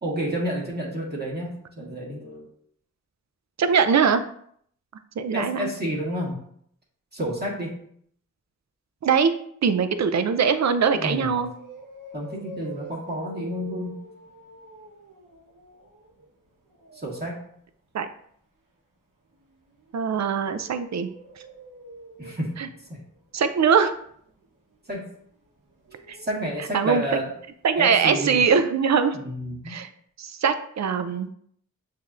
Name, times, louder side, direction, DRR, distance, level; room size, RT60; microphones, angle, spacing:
voice 1, 0.0-2.5 5.3-6.4 7.1-7.7 10.9-11.4 12.1-14.0 17.0-17.4 22.2-22.6 22.9-23.0 24.9-25.0 26.2-27.3 27.7-28.4 29.1-29.7, equal, 30° right, -5 dB, 1.5 m, -30 dB
voice 2, 3.6-4.2 5.2-5.7 9.0-9.3 9.6-11.5 17.9-18.1 19.9-21.1 22.6-22.7 23.3-23.9 26.1-26.2 26.7-27.2 27.6-29.2 29.7-29.9 30.2-31.3, right 6 dB, 60° right, 10 dB, 0.5 m, -22 dB
sound 1, 10.8-10.9 11.3-17.2 19.3-27.3 27.6-27.7 28.1-28.2, right 2 dB, 80° right, 1.1 m, -46 dB
6.6 x 2.8 x 2.4 m, 0.65 s
cardioid pair, 45°, 32 cm